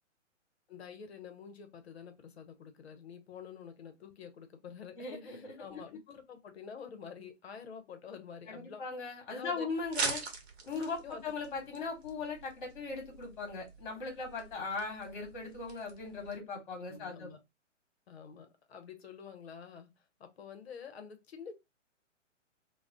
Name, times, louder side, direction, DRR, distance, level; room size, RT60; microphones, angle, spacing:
voice 1, 0.7-8.8 9.3-9.7 11.0-11.2 16.9-17.4 18.1-19.9 20.2-21.5, left 7 dB, 55° left, 0.7 m, -48 dB
voice 2, 5.0-5.8 8.5-10.2 10.7-17.3, left 4 dB, 40° left, 1.2 m, -39 dB
Packing Tape Crunch, 9.8-16.4, right 4 dB, 55° right, 0.9 m, -43 dB
2.3 x 2.1 x 3.6 m
figure-of-eight pair, 130°, 37 cm